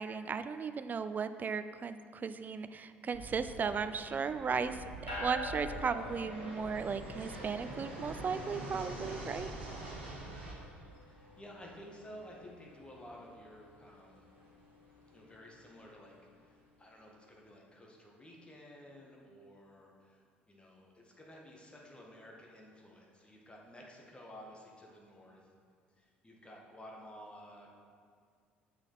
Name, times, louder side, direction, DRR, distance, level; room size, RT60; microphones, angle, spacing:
voice 1, 0.0-4.8 5.2-9.5, right 5 dB, 30° right, 11 dB, 0.4 m, -36 dB
Fixed-wing aircraft airplane, 3.1-10.5, right 2 dB, 85° right, 1.3 m, -45 dB
sound 1, 5.1-16.7, left 2 dB, 85° left, 1.7 m, -49 dB
voice 2, 11.0-14.3 15.1-25.5 25.9-27.7, equal, 15° left, -1 dB, 1.7 m, -53 dB
9.1 x 6.4 x 4.2 m, 2.1 s
figure-of-eight pair, 55°, 6 cm